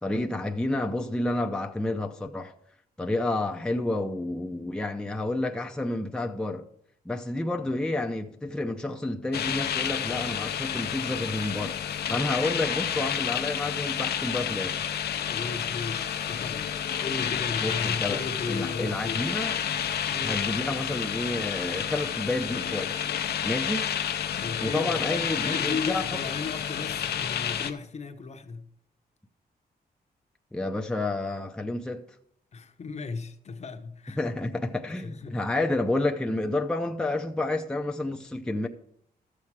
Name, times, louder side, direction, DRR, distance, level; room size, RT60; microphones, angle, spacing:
voice 1, 0.0-2.5 3.0-6.7 7.0-11.8 12.1-14.8 17.6-18.2 18.5-19.6 20.2-23.1 23.4-24.0 24.6-26.2 30.5-32.0 34.1-38.7, left 2 dB, 5° left, 0.6 m, -30 dB
sound 1, 9.3-27.7, left 9 dB, 75° left, 0.7 m, -30 dB
voice 2, 15.1-19.2 20.1-20.4 24.4-28.7 32.5-34.2 35.0-35.4, left 4 dB, 40° left, 0.9 m, -36 dB
13.0 x 7.3 x 4.7 m
cardioid pair, 110°, 17 cm